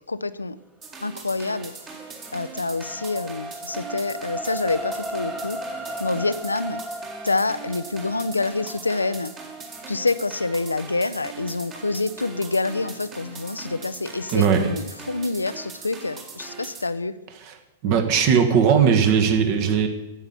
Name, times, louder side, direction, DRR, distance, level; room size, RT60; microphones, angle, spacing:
voice 1, 0.1-0.6 1.0-1.7 2.3-5.6 6.0-6.8 7.2-9.3 9.9-17.2, left 3 dB, 80° left, 14 dB, 0.5 m, -27 dB
sound 1, 0.8-16.9, right 5 dB, 25° right, 2.0 m, -41 dB
sound 2, 1.7-14.1 14.6-14.7, right 1 dB, 10° right, 1.2 m, -37 dB
voice 2, 14.3-14.7 17.4-17.5 17.8-19.9, right 7 dB, 40° right, 5 dB, 1.6 m, -18 dB
9.2 x 7.9 x 8.4 m, 1.0 s
figure-of-eight pair, 100°, 0 cm